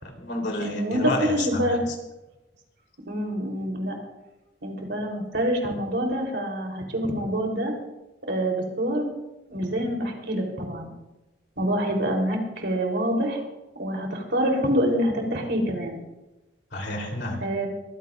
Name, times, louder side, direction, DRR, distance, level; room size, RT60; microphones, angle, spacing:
voice 1, 0.0-1.8 16.7-17.4, left 1 dB, 60° left, 1 dB, 3.4 m, -30 dB
voice 2, 0.6-1.8 3.1-4.0 4.6-7.7 8.2-9.1 9.5-10.9 11.6-13.4 13.8-16.0 17.4-17.7, equal, 60° right, 1 dB, 3.5 m, -26 dB
23.0 x 15.5 x 2.5 m, 1.0 s
head